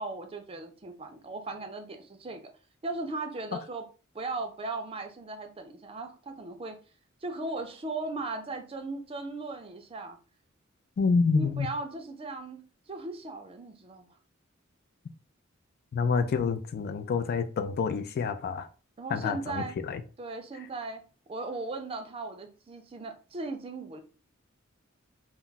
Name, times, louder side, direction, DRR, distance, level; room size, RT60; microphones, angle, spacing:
voice 1, 0.0-2.5 2.8-3.9 4.1-6.8 7.2-10.2 11.3-14.1 19.0-19.8 20.2-21.0 21.3-24.0, right 3 dB, 30° right, 0.4 m, -37 dB
voice 2, 11.0-11.7 15.9-18.7 19.1-20.0, left 5 dB, 50° left, 0.3 m, -28 dB
2.3 x 2.0 x 3.8 m
head